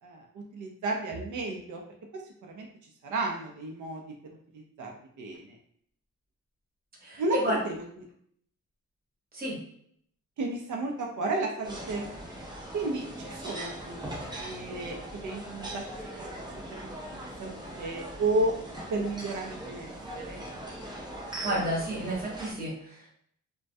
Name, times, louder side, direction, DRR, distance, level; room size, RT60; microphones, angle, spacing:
voice 1, 0.0-1.8 2.1-2.2 2.5-2.7 3.0-4.0 4.5-5.6 7.2-7.8 10.4-12.1 12.7-14.0 14.3-15.8 16.2-16.3 16.7-18.5 18.9-20.5, right 2 dB, 85° right, 1 dB, 0.5 m, -33 dB
voice 2, 7.0-7.6 9.3-9.6 21.4-23.1, equal, 30° right, -4 dB, 0.8 m, -31 dB
sound 1, 11.6-22.5, right 1 dB, 15° right, 0.4 m, -40 dB
2.2 x 2.2 x 2.6 m, 0.66 s
wide cardioid pair, 165°, 30 cm